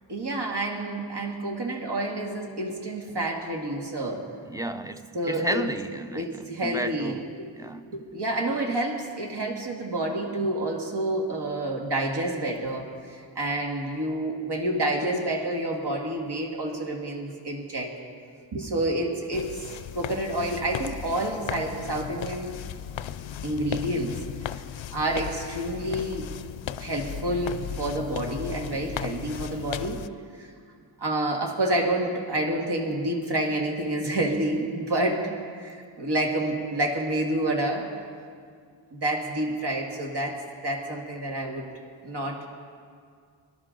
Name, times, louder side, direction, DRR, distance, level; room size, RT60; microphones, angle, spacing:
voice 1, 0.1-4.3 5.1-5.6 6.1-7.5 7.9-17.9 18.5-19.5 20.0-22.6 23.4-24.2 24.9-26.3 26.8-30.0 30.4-30.5 31.0-37.8 38.9-40.4 40.6-41.7 42.0-42.5, right 1 dB, 60° right, 0 dB, 2.0 m, -28 dB
voice 2, 4.4-7.2 7.6-7.9, right 1 dB, 10° right, 9 dB, 0.5 m, -32 dB
sound 1, 19.3-30.1, left 9 dB, 80° left, 0.5 m, -36 dB
24.5 x 12.0 x 3.9 m, 2.1 s
wide cardioid pair, 160°, 45 cm